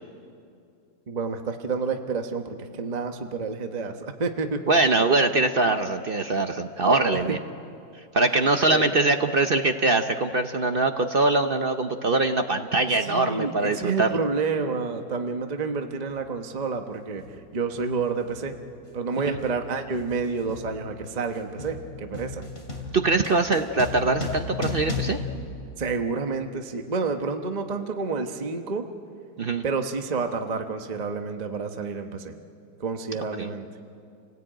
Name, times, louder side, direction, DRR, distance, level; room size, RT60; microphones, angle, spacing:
voice 1, 1.1-4.6 6.8-7.0 8.7-8.9 13.0-17.2 17.5-18.5 18.9-22.4 25.8-28.9 29.6-32.3 32.8-33.7, right 4 dB, 30° right, 5 dB, 1.0 m, -29 dB
voice 2, 4.7-7.4 8.1-14.2 19.2-19.4 22.9-25.2 29.4-29.6 33.4-33.5, right 3 dB, 50° right, 7 dB, 0.6 m, -23 dB
sound 1, 16.1-16.3 17.2-17.5 17.7-26.3, left 3 dB, 35° left, 2.7 m, -36 dB
29.0 x 18.0 x 8.9 m, 2.4 s
omnidirectional pair, 1.9 m